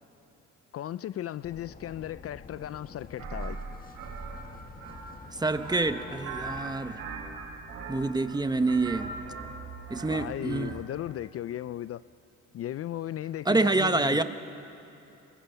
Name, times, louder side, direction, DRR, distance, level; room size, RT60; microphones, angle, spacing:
voice 1, 0.7-3.6 10.1-12.0 12.5-14.2, left 12 dB, 50° left, 0.4 m, -36 dB
sound 1, 1.4-6.8, left 4 dB, 30° left, 1.7 m, -49 dB
sound 2, 3.2-10.9, right 4 dB, 85° right, 5.9 m, -40 dB
voice 2, 5.3-7.0 7.9-9.1 9.9-10.7 13.4-14.2, right 3 dB, 15° right, 1.0 m, -27 dB
28.0 x 22.5 x 5.7 m
cardioid pair, 90°, 30 cm